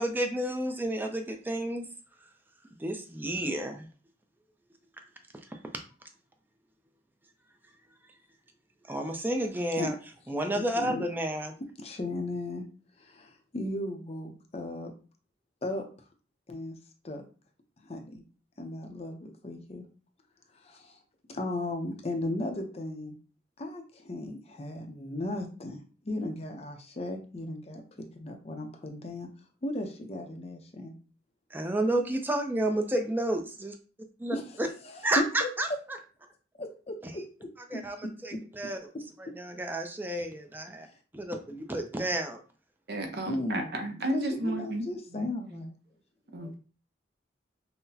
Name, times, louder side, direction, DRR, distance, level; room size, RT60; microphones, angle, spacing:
voice 1, 0.0-1.9 2.8-3.9 5.5-5.6 8.9-10.0 10.3-11.5 31.5-33.7 34.2-34.7 35.0-35.7 37.0-37.1 37.7-38.0 38.2-38.8 39.2-40.9 41.1-42.4, right 1 dB, 10° right, 4 dB, 0.5 m, -31 dB
voice 2, 10.5-11.1 11.8-12.6 13.0-14.9 15.6-15.9 16.5-16.7 17.0-17.2 17.8-18.2 18.6-19.9 20.5-21.0 21.3-23.2 23.6-25.8 26.0-29.3 29.6-30.9 34.3-34.4 34.8-35.5 36.6-38.4 43.3-43.9 44.1-45.7 46.4-46.6, left 1 dB, 35° left, 4 dB, 0.6 m, -36 dB
voice 3, 42.9-45.2 45.5-45.6 46.3-46.5, right 1 dB, 65° right, 5 dB, 0.7 m, -33 dB
5.7 x 2.1 x 2.7 m, 0.37 s
head